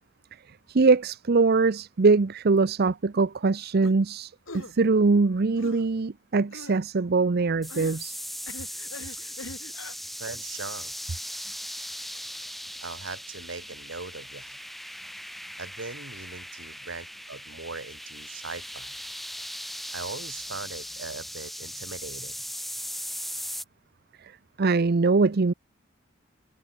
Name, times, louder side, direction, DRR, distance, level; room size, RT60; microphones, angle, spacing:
voice 1, 0.7-8.2 24.2-24.3 24.6-25.5, right 4 dB, 50° right, 0.6 m, -22 dB
sound 1, 3.8-4.0 4.5-4.7 5.6-5.9 6.5-6.8 7.7-8.0 8.5-10.0, left 2 dB, 85° left, 3.3 m, -42 dB
sound 2, 7.6-23.6, equal, ahead, 1.9 m, -39 dB
voice 2, 10.1-10.9 12.8-14.6 15.6-19.0 19.9-22.4, right 3 dB, 70° right, 2.7 m, -40 dB
head